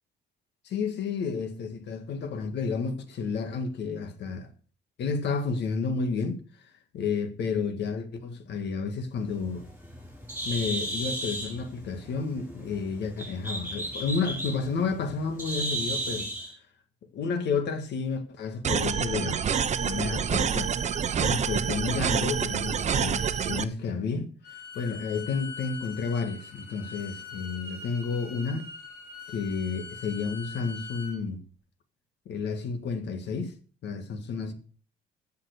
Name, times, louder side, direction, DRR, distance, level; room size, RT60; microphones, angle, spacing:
voice 1, 0.6-4.5 5.0-9.6 10.5-16.3 17.1-19.4 19.8-20.8 21.2-24.3 24.7-28.6 29.3-31.4 32.3-33.5 33.8-34.5, left 5 dB, 75° left, 1.8 m, -31 dB
Bird, 9.2-16.5, right 1 dB, 10° right, 6.0 m, -35 dB
sound 1, 18.6-23.6, right 7 dB, 40° right, 0.8 m, -27 dB
Bowed string instrument, 24.4-31.2, left 5 dB, 55° left, 4.2 m, -43 dB
14.5 x 5.8 x 6.7 m
cardioid pair, 125°, 18 cm